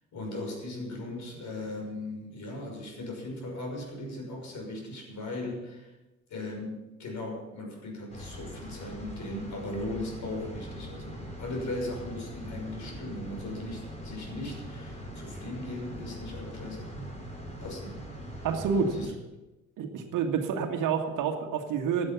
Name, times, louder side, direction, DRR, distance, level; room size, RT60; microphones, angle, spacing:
voice 1, 0.1-6.0 6.3-17.1 17.6-18.0 18.4-18.5 19.0-19.1, left 1 dB, 50° left, 2 dB, 6.1 m, -38 dB
sound 1, 8.1-19.1, equal, 15° left, 4.4 m, -42 dB
voice 2, 18.4-19.1 19.8-22.1, right 6 dB, 55° right, 5 dB, 1.9 m, -28 dB
16.0 x 10.5 x 6.0 m, 1.1 s
hypercardioid pair, 55°, 38 cm